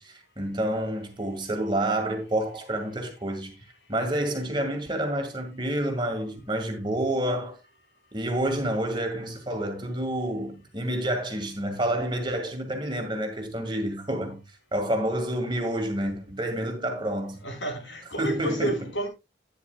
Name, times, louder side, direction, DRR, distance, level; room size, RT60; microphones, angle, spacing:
voice 1, 0.0-3.6 3.9-7.6 8.1-14.4 14.7-17.4 18.2-18.9, right 1 dB, 25° right, 1.9 m, -29 dB
voice 2, 17.4-19.1, right 1 dB, 80° left, 4.3 m, -30 dB
11.5 x 9.7 x 2.3 m
head